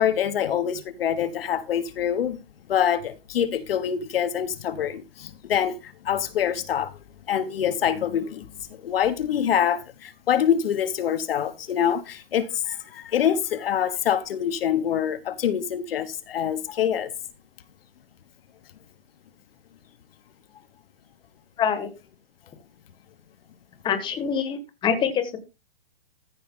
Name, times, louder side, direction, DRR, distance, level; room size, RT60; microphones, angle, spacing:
voice 1, 0.0-2.4 2.7-7.0 7.3-8.5 8.8-17.1, left 9 dB, 65° left, 1.2 m, -25 dB
voice 2, 21.6-21.9 23.8-25.4, left 7 dB, 15° left, 1.4 m, -25 dB
14.5 x 5.4 x 3.7 m
hypercardioid pair, 145°, 31 cm